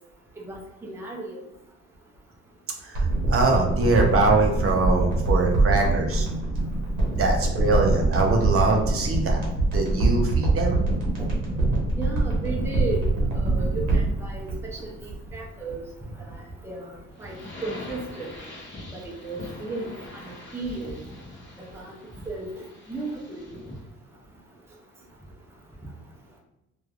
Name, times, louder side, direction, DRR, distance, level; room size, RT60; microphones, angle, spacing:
voice 1, 0.5-1.4 11.2-11.3 12.0-13.0 13.4-14.5 14.8-14.9 15.3-15.8 16.6-16.8 17.2-17.3 17.6-18.3 18.9-19.9 20.5-20.9 21.7-21.9 22.3-22.5 22.9-23.4, right 3 dB, 10° right, -1 dB, 0.5 m, -33 dB
voice 2, 2.8-6.3 7.2-9.4 9.7-10.8, right 3 dB, 45° right, 1 dB, 0.6 m, -23 dB
sound 1, 2.9-15.4 15.7-15.8, right 2 dB, 85° right, 1.0 m, -24 dB
sound 2, 17.2-23.8, left 1 dB, 40° left, 1.2 m, -43 dB
3.1 x 2.3 x 2.4 m, 0.91 s
cardioid pair, 90°, 30 cm